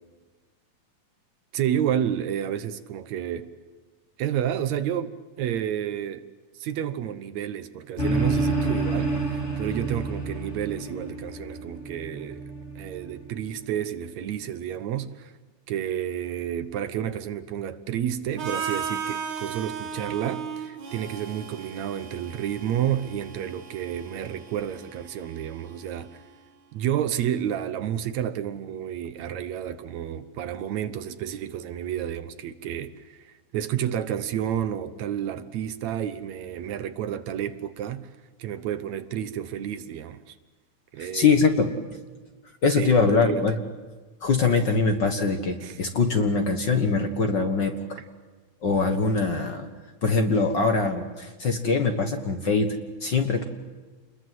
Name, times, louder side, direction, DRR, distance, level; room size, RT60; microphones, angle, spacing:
voice 1, 1.5-3.5 4.2-6.3 6.5-12.4 12.8-15.3 15.7-26.2 26.7-38.1 38.4-40.4 40.9-41.4 42.7-43.5 45.6-45.8, right 10 dB, 70° right, 2.2 m, -30 dB
sound 1, 8.0-13.6, right 2 dB, 20° left, 3.4 m, -29 dB
Harmonica, 18.4-26.3, right 6 dB, 40° right, 2.1 m, -36 dB
voice 2, 41.0-41.7 42.6-43.6 44.2-48.0 48.6-49.7 50.0-53.4, left 4 dB, 45° left, 1.7 m, -23 dB
29.0 x 21.5 x 7.8 m
omnidirectional pair, 3.4 m